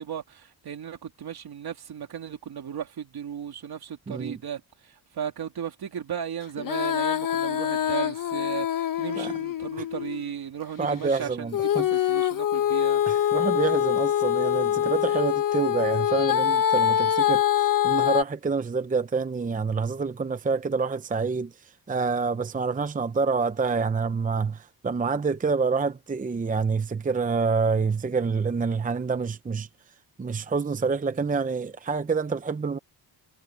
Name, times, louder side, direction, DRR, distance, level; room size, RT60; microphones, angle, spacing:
voice 1, 0.0-13.0, right 8 dB, 65° right, 3.0 m, -36 dB
voice 2, 4.1-4.4 9.2-9.3 10.8-11.9 13.1-21.5 21.9-29.7 30.2-32.8, right 4 dB, 20° right, 0.7 m, -27 dB
Female singing, 6.6-10.3 11.5-18.2, left 10 dB, 55° left, 1.0 m, -24 dB
wide cardioid pair, 135°, 40 cm